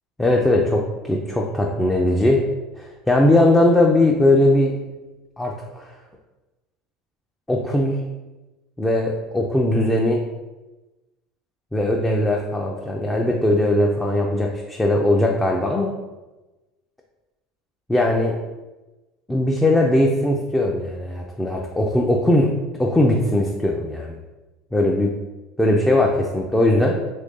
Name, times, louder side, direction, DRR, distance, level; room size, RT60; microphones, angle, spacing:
voice 1, 0.2-2.5 2.8-4.7 5.4-6.0 7.5-8.0 8.8-10.2 11.7-15.9 17.9-18.4 19.3-22.5 22.8-24.2 24.7-25.1 25.6-27.0, left 1 dB, 10° left, -1 dB, 0.5 m, -19 dB
2.8 x 2.7 x 3.6 m, 1.1 s
hypercardioid pair, 80°, 0 cm